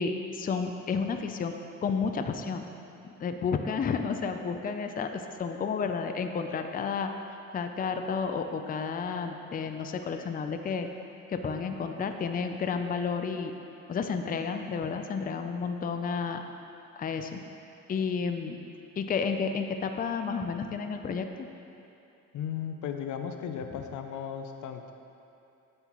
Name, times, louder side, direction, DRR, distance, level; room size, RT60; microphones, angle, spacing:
voice 1, 0.0-1.5 1.8-2.6 3.0-7.1 7.5-10.9 11.3-13.5 13.9-16.5 17.0-17.4 17.9-18.6 19.0-21.5, left 5 dB, 30° left, 6 dB, 0.4 m, -31 dB
voice 2, 22.3-24.9, left 8 dB, 75° left, 6 dB, 0.6 m, -36 dB
9.1 x 7.7 x 3.0 m, 2.8 s
cardioid pair, 90°, 30 cm